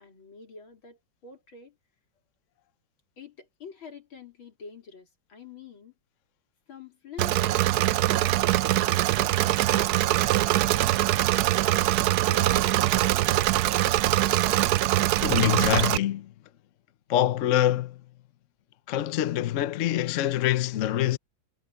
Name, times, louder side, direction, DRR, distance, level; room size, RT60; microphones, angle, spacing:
voice 1, 0.0-1.8 3.2-5.9 6.7-11.4 12.1-12.7 13.0-13.9, left 4 dB, 80° left, 4.3 m, -47 dB
Engine / Mechanisms, 7.2-16.0, right 15 dB, 75° right, 0.9 m, -23 dB
voice 2, 15.2-16.3 17.1-18.0 18.9-21.2, left 12 dB, 60° left, 0.8 m, -25 dB
omnidirectional pair, 2.2 m